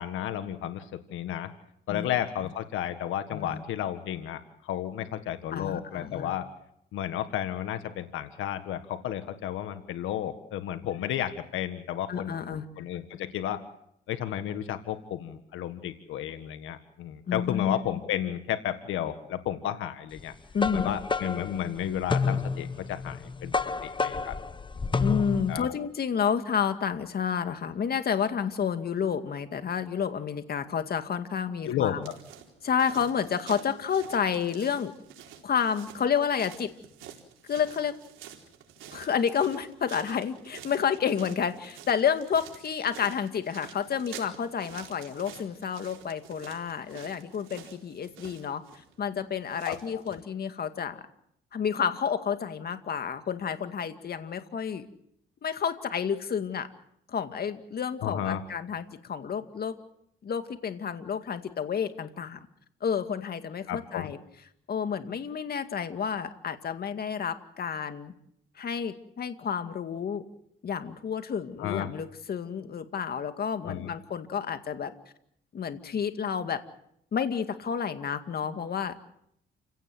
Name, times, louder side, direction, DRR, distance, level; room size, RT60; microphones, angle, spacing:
voice 1, 0.0-1.5 1.9-6.5 6.9-13.6 14.1-20.3 20.7-23.5 23.8-24.3 24.9-25.1 25.5-25.7 31.7-32.1 49.7-50.0 58.0-58.4 63.7-64.1 71.6-71.9 73.6-73.9, left 11 dB, 85° left, 9 dB, 1.7 m, -32 dB
voice 2, 3.3-3.6 5.5-6.3 12.1-12.7 17.3-18.0 20.5-20.9 25.0-32.1 32.6-34.9 35.4-36.7 37.5-37.9 38.9-48.6 49.0-51.0 51.5-54.9 55.4-56.7 57.1-59.7 60.2-62.4 62.8-64.2 64.7-68.1 68.6-70.2 70.6-74.9 75.5-76.6 77.1-79.1, left 7 dB, 50° left, 8 dB, 2.2 m, -30 dB
sound 1, 20.2-25.6, left 4 dB, 25° left, 1.0 m, -30 dB
sound 2, 32.0-50.2, right 9 dB, 85° right, 4.2 m, -49 dB
29.5 x 17.0 x 7.9 m, 0.74 s
cardioid pair, 90°, 20 cm